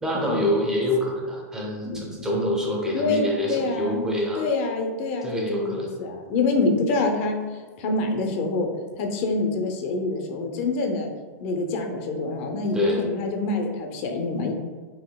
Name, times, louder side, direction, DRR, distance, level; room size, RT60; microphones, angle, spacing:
voice 1, 0.0-4.4 5.2-5.9 12.7-13.0, equal, 5° right, -2 dB, 0.7 m, -26 dB
voice 2, 1.8-2.3 2.9-4.0 4.4-8.7 9.0-11.1 11.4-14.5, left 3 dB, 50° left, 4 dB, 0.5 m, -26 dB
4.2 x 2.7 x 2.2 m, 1.4 s
hypercardioid pair, 135°, 9 cm